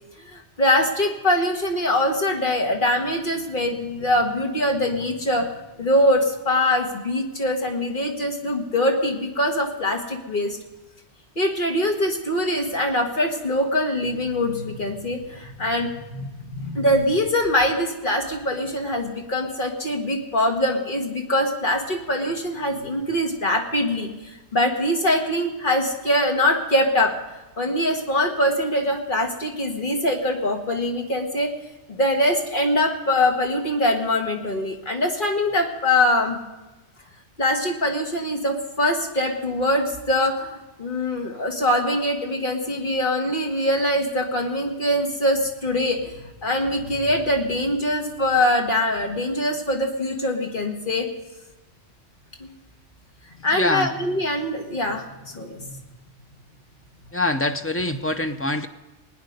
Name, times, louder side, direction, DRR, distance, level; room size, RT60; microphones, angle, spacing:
voice 1, 0.3-5.5 5.8-10.6 11.3-27.1 27.6-31.5 31.9-36.4 37.4-46.1 46.4-51.1 52.4-52.5 53.4-55.1 55.3-55.7, left 1 dB, 45° left, 2 dB, 1.7 m, -23 dB
voice 2, 53.5-53.9 57.1-58.7, left 2 dB, 20° left, 6 dB, 0.3 m, -24 dB
20.5 x 9.5 x 5.3 m, 1.1 s
omnidirectional pair, 1.2 m